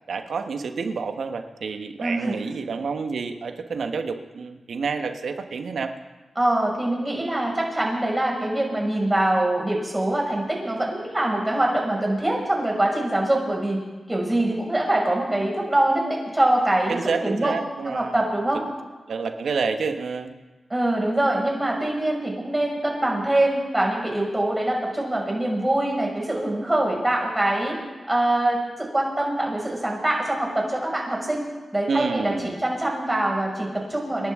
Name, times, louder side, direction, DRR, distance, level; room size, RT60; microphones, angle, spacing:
voice 1, 0.1-5.9 16.9-18.2 18.5-18.6 19.1-20.3 31.9-32.6, right 5 dB, 75° right, 7 dB, 1.1 m, -29 dB
voice 2, 2.0-2.4 6.4-13.8 14.1-17.6 17.9-18.6 20.7-27.8 28.1-31.4 31.7-34.3, right 1 dB, 25° right, -1 dB, 5.8 m, -24 dB
28.5 x 11.0 x 3.7 m, 1.2 s
cardioid pair, 40°, 0 cm